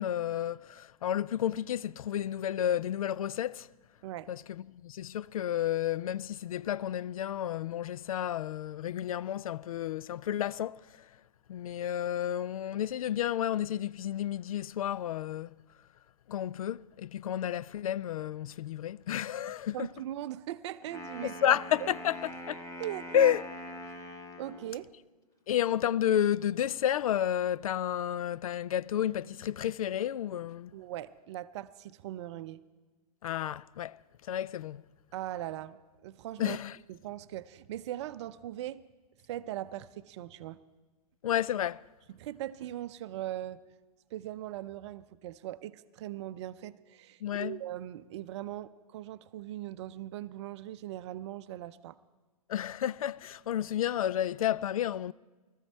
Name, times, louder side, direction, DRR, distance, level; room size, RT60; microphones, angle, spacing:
voice 1, 0.0-3.7 4.3-4.4 4.7-10.8 11.5-15.5 16.3-19.9 21.2-22.6 23.1-23.4 25.5-30.7 33.2-34.0 34.3-34.8 36.4-36.8 41.2-41.8 47.2-47.6 52.5-55.1, left 11 dB, 65° left, 0.4 m, -31 dB
voice 2, 19.7-21.6 22.8-23.4 24.4-24.9 30.7-32.6 35.1-36.6 36.9-38.8 39.3-40.6 42.1-43.6 44.1-52.0, right 13 dB, 50° right, 0.6 m, -40 dB
Wind instrument woodwind instrument, 20.8-24.8, left 1 dB, 15° left, 1.4 m, -43 dB
20.0 x 13.5 x 4.4 m
figure-of-eight pair, 105°, 19 cm